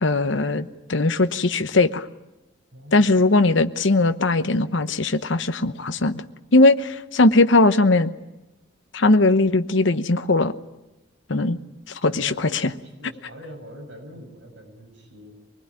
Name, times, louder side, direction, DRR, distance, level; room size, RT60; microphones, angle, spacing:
voice 1, 0.0-2.0 2.9-6.2 6.5-8.1 8.9-10.5 11.3-11.6 12.0-12.7, left 2 dB, 70° left, 11 dB, 1.0 m, -19 dB
voice 2, 2.7-3.1 12.0-15.3, equal, 70° right, 2 dB, 7.1 m, -42 dB
25.0 x 20.0 x 9.7 m, 0.97 s
head